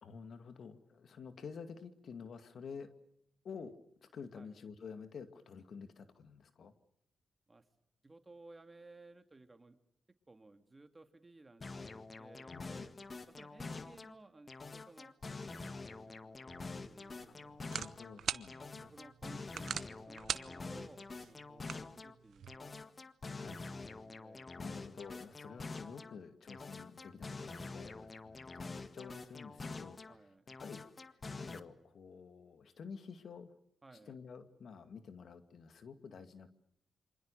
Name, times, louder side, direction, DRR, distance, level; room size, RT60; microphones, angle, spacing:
voice 1, 0.0-2.9 3.4-6.7 12.5-12.9 17.3-17.4 17.7-19.0 23.3-23.7 24.6-30.3 30.6-33.6 34.0-36.5, left 5 dB, 70° left, 10 dB, 2.3 m, -50 dB
voice 2, 8.0-9.8 10.3-12.9 13.3-15.1 15.5-17.6 18.5-23.0 23.2-24.5 30.1-30.4 33.8-34.1, right 2 dB, 25° right, 8 dB, 2.7 m, -58 dB
sound 1, 11.6-14.2 14.5-18.2 18.5-22.1 22.5-26.1 26.5-30.2 30.5-31.6, left 3 dB, 40° left, 1.7 m, -46 dB
sound 2, 16.5-22.6, right 8 dB, 75° right, 1.0 m, -44 dB
27.5 x 25.5 x 6.7 m, 0.73 s
cardioid pair, 65°, 0 cm